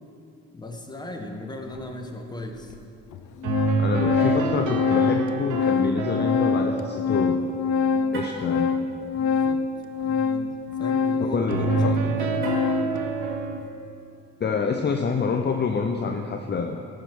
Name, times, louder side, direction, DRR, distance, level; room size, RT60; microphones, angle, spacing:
voice 1, 0.5-2.7 9.1-9.7 10.0-12.5, left 1 dB, 15° left, 3 dB, 1.3 m, -37 dB
Organ, 1.8-1.9 2.7-2.8 3.1-13.0, left 5 dB, 80° left, 0.6 m, -25 dB
sound 1, 3.4-8.7 11.5-13.6, right 5 dB, 75° right, 0.9 m, -29 dB
voice 2, 3.8-7.4 8.1-8.7 11.2-12.0 14.4-16.8, left 5 dB, 35° left, 4 dB, 0.6 m, -27 dB
Car, 8.0-8.5 12.3-12.9, right 1 dB, 45° right, 2.8 m, -37 dB
13.5 x 6.4 x 6.1 m, 2.7 s
cardioid pair, 90°, 30 cm